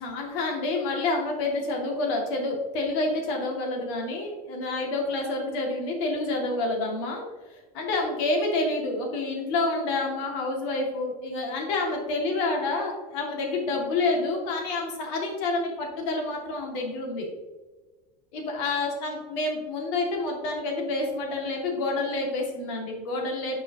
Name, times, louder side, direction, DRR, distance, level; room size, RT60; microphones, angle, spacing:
voice 1, 0.0-17.3 18.3-23.6, left 2 dB, 55° left, 0 dB, 2.0 m, -28 dB
8.9 x 5.1 x 2.8 m, 1.2 s
supercardioid pair, 165°, 19 cm